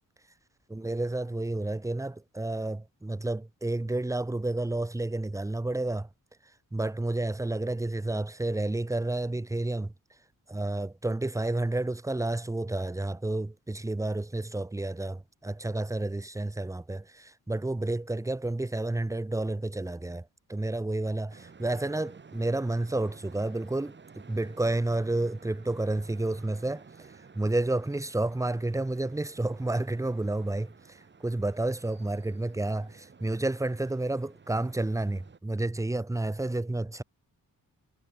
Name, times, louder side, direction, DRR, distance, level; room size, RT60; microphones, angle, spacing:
voice 1, 0.7-6.1 6.7-9.9 10.5-37.0, right 2 dB, 10° right, 1.0 m, -30 dB
sound 1, 21.3-35.4, right 5 dB, 30° right, 2.1 m, -53 dB
wide cardioid pair, 155°, 35 cm